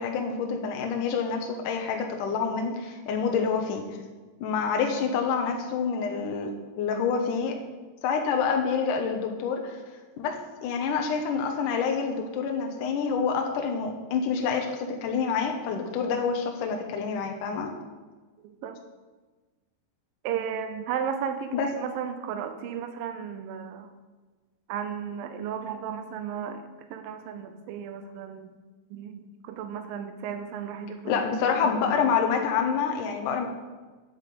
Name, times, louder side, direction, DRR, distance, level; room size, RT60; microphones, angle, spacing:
voice 1, 0.0-3.8 4.4-7.5 8.0-9.8 10.2-17.7 21.5-21.7 31.1-33.5, left 6 dB, 70° left, 3 dB, 2.1 m, -27 dB
voice 2, 20.2-23.9 24.7-28.6 28.9-31.2, right 8 dB, 80° right, 8 dB, 2.0 m, -34 dB
9.6 x 8.6 x 8.5 m, 1.3 s
omnidirectional pair, 5.1 m